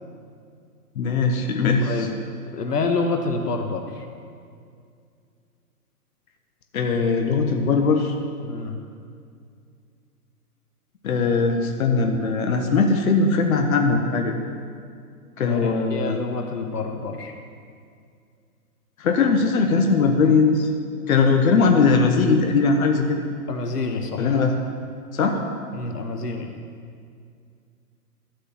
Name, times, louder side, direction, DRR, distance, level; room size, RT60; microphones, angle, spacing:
voice 1, 0.9-2.1 6.7-8.1 11.0-14.4 15.4-16.2 19.0-20.7 21.1-23.2 24.2-24.5 25.1-25.4, left 4 dB, 60° left, 3 dB, 1.4 m, -20 dB
voice 2, 1.8-2.1 2.5-4.0 8.4-8.8 15.4-17.3 23.5-24.3 25.7-26.5, left 3 dB, 80° left, 4 dB, 1.5 m, -28 dB
13.0 x 8.2 x 5.9 m, 2.3 s
hypercardioid pair, 135°, 47 cm